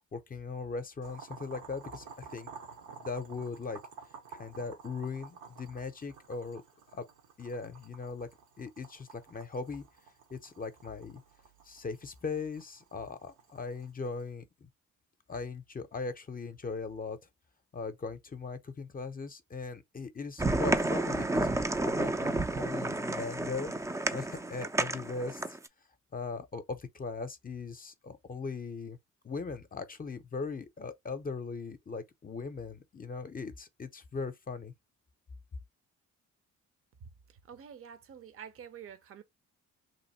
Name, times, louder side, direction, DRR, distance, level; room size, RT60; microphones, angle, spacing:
voice 1, 0.1-2.5 3.0-3.8 4.3-6.6 6.9-7.0 7.4-8.3 8.6-9.8 10.3-11.2 11.6-14.7 15.3-17.2 17.7-23.7 24.1-25.6 26.1-29.0 29.2-34.7, left 4 dB, 30° left, 0.6 m, -39 dB
Boiling, 1.0-14.3, right 5 dB, 85° right, 1.2 m, -52 dB
sound 1, 20.4-25.7, right 2 dB, 10° right, 0.4 m, -31 dB
voice 2, 37.3-39.2, right 8 dB, 45° right, 0.7 m, -48 dB
3.1 x 2.5 x 4.2 m
cardioid pair, 90°, 30 cm